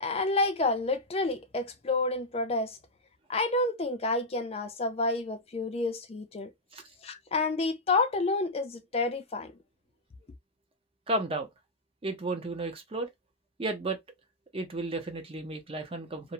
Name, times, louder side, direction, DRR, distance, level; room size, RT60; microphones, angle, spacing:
voice 1, 0.0-2.8 3.3-6.5 7.0-9.5, left 3 dB, 35° left, 0.4 m, -29 dB
voice 2, 11.1-11.5 12.0-13.1 13.6-14.0 14.5-16.3, right 2 dB, 30° right, 0.6 m, -33 dB
2.5 x 2.0 x 2.9 m
head